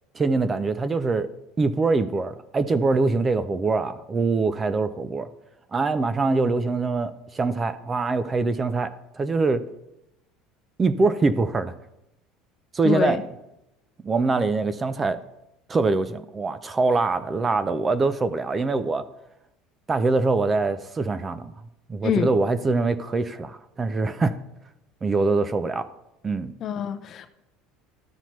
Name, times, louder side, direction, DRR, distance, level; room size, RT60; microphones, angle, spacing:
voice 1, 0.1-1.3 1.6-5.3 5.7-9.6 10.8-11.7 12.7-13.2 14.0-15.2 15.7-19.1 19.9-21.5 21.9-24.4 25.0-25.9 26.2-26.5, right 3 dB, 15° right, 0.4 m, -23 dB
voice 2, 12.8-13.2 22.0-22.3 26.6-27.3, left 8 dB, 35° left, 0.6 m, -25 dB
13.5 x 5.7 x 3.1 m
cardioid pair, 165°, 0 cm